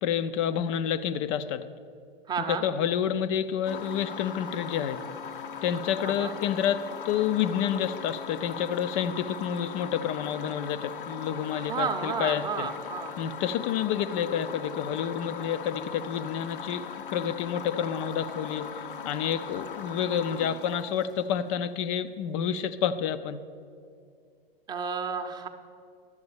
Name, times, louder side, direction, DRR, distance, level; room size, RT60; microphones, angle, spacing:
voice 1, 0.0-1.6 2.5-5.0 5.6-12.7 13.2-16.9 17.1-18.7 19.0-23.4, left 9 dB, 35° left, 13 dB, 0.5 m, -29 dB
voice 2, 2.3-2.7 6.0-6.3 11.5-13.1 24.7-25.5, right 6 dB, 15° right, 5 dB, 0.7 m, -32 dB
sound 1, 3.6-21.6, left 7 dB, 65° left, 0.8 m, -39 dB
11.0 x 7.8 x 7.0 m, 2.4 s
figure-of-eight pair, 100°, 30 cm